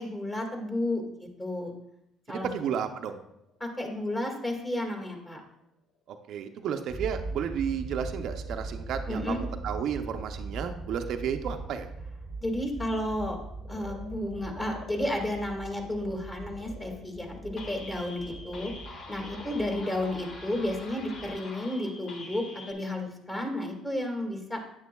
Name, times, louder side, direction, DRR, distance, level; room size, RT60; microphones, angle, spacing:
voice 1, 0.0-1.7 2.3-2.5 3.6-5.4 9.1-9.4 12.4-13.4 13.7-18.7 19.1-24.6, left 1 dB, 20° left, 2 dB, 1.9 m, -32 dB
voice 2, 2.3-3.2 6.1-11.9, right 8 dB, 65° right, 6 dB, 0.6 m, -32 dB
Frog, 3.4-16.1 16.5-21.1, left 4 dB, 75° left, 2.1 m, -54 dB
sound 1, 6.9-21.4, right 3 dB, 5° right, 0.9 m, -41 dB
sound 2, 17.6-22.7, left 2 dB, 55° left, 1.3 m, -45 dB
9.5 x 8.8 x 2.3 m, 0.80 s
supercardioid pair, 85°, 0 cm